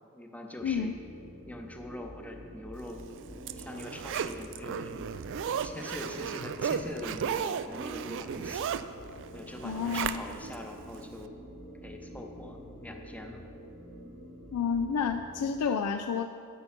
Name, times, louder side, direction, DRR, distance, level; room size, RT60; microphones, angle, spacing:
voice 1, 0.1-1.0 1.4-3.0 3.6-5.1 5.6-8.7 9.3-11.3 11.8-13.4, left 1 dB, 5° left, 2 dB, 0.7 m, -43 dB
voice 2, 0.6-0.9 9.6-10.2 14.5-16.3, left 6 dB, 85° left, 7 dB, 0.4 m, -30 dB
sound 1, 0.6-15.5, equal, 60° left, 1.9 m, -47 dB
Zipper (clothing), 3.0-10.6 11.0-11.1, right 7 dB, 55° right, 0.3 m, -35 dB
8.5 x 6.7 x 5.8 m, 2.4 s
head